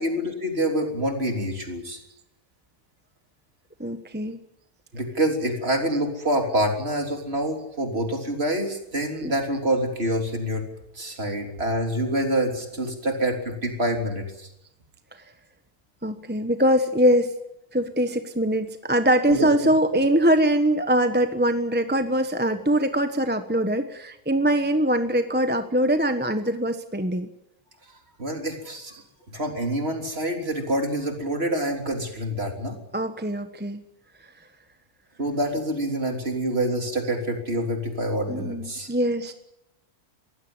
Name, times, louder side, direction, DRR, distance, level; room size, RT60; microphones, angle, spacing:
voice 1, 0.0-2.0 4.9-10.7 10.9-14.5 19.3-20.0 28.2-29.0 29.3-32.8 35.2-38.9, right 1 dB, 40° right, 3 dB, 3.7 m, -26 dB
voice 2, 3.8-4.4 9.2-9.3 11.2-11.3 16.0-17.3 17.7-27.3 28.9-29.0 32.9-33.8 37.0-37.1 38.3-39.3, right 1 dB, 5° right, 8 dB, 1.0 m, -23 dB
22.0 x 16.0 x 9.7 m, 0.86 s
omnidirectional pair, 1.7 m